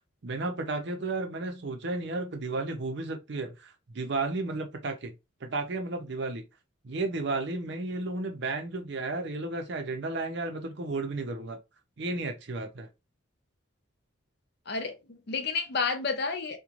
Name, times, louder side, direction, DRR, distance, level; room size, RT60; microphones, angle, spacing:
voice 1, 0.2-5.1 5.4-6.4 6.8-11.6 12.0-12.9, right 2 dB, 55° right, 0.5 m, -33 dB
voice 2, 14.7-16.6, left 4 dB, 50° left, 0.5 m, -31 dB
3.0 x 2.2 x 2.4 m
head